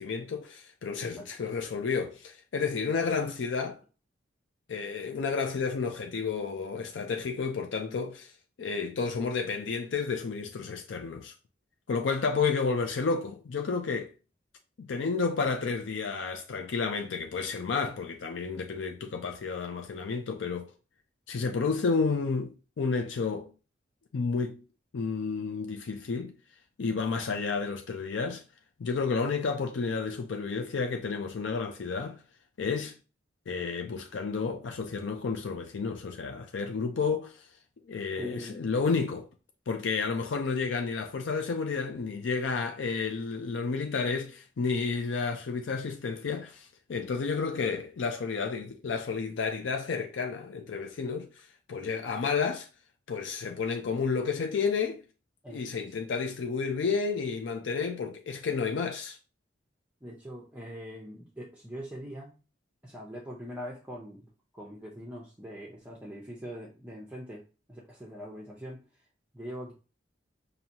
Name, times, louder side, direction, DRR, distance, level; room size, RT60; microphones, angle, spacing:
voice 1, 0.0-3.8 4.7-8.3 8.6-11.3 11.9-14.1 14.8-20.7 21.3-23.5 24.1-24.6 24.9-26.3 26.8-28.4 28.8-32.2 32.6-32.9 33.5-37.5 37.9-39.3 39.7-52.7 53.1-55.0 55.5-59.2, left 5 dB, 80° left, 0.5 m, -31 dB
voice 2, 38.2-38.5 55.4-55.8 60.0-62.4 62.8-64.3 64.5-67.4 67.7-68.8 69.3-69.7, equal, 10° right, 0.6 m, -42 dB
5.4 x 2.6 x 2.8 m
head